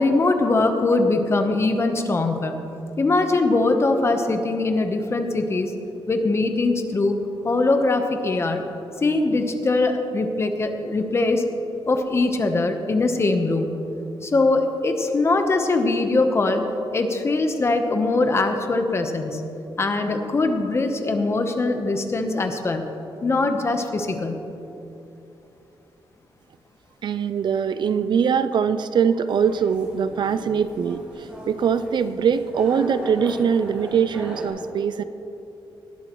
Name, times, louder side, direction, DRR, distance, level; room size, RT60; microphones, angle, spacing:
voice 1, 0.0-2.6 3.0-5.7 6.1-7.2 7.4-8.6 9.0-11.4 11.9-13.7 14.2-16.6 16.9-19.4 19.8-22.9 23.2-24.4, left 3 dB, 30° left, 6 dB, 0.9 m, -22 dB
voice 2, 27.0-35.0, right 7 dB, 55° right, 12 dB, 0.4 m, -22 dB
sound 1, 29.3-34.5, equal, 15° right, 3.2 m, -38 dB
19.0 x 12.0 x 3.1 m, 2.9 s
wide cardioid pair, 155°, 9 cm